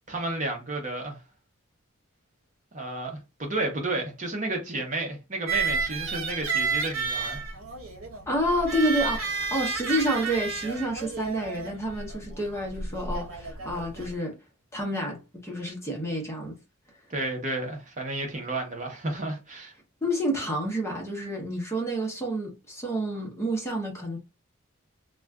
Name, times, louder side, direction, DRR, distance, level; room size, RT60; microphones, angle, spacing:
voice 1, 0.1-1.2 2.7-7.4 17.1-19.7, right 2 dB, 35° right, 0.8 m, -32 dB
sound 1, 5.5-14.1, right 5 dB, 85° right, 0.8 m, -31 dB
voice 2, 8.3-14.4 14.7-16.6 20.0-24.2, equal, 15° left, 0.7 m, -29 dB
2.4 x 2.2 x 3.4 m
head